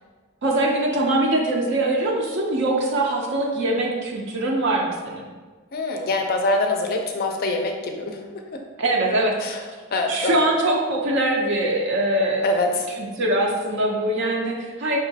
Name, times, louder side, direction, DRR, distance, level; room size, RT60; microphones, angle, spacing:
voice 1, 0.4-5.3 8.8-9.4 10.1-12.5 13.0-15.0, right 1 dB, 55° right, -1 dB, 0.5 m, -22 dB
voice 2, 5.7-8.2 9.4-9.6 9.9-10.5 12.4-12.9, left 2 dB, 40° left, 3 dB, 0.4 m, -24 dB
5.4 x 3.0 x 2.7 m, 1.4 s
head